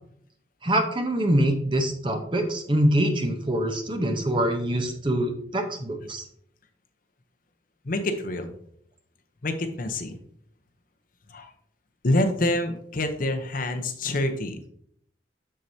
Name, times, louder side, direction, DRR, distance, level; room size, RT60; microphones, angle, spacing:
voice 1, 0.6-6.3, right 1 dB, 25° right, 5 dB, 0.8 m, -24 dB
voice 2, 7.8-8.5 9.4-10.2 11.3-11.5 12.0-14.7, left 1 dB, 45° left, 6 dB, 0.7 m, -26 dB
7.5 x 6.7 x 2.7 m, 0.67 s
head